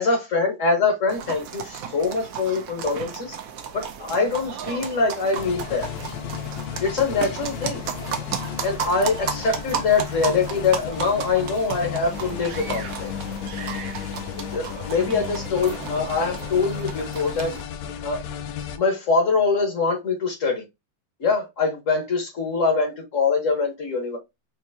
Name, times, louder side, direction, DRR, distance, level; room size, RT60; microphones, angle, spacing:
voice 1, 0.0-3.4 3.7-5.9 6.8-7.8 8.6-13.1 14.4-17.5 18.0-18.2 18.8-20.6 21.2-24.2, left 4 dB, 45° left, 1.4 m, -23 dB
sound 1, 1.1-17.6, right 7 dB, 65° right, 0.9 m, -34 dB
sound 2, 5.4-18.8, left 9 dB, 80° left, 1.4 m, -34 dB
5.5 x 2.8 x 2.7 m
omnidirectional pair, 2.2 m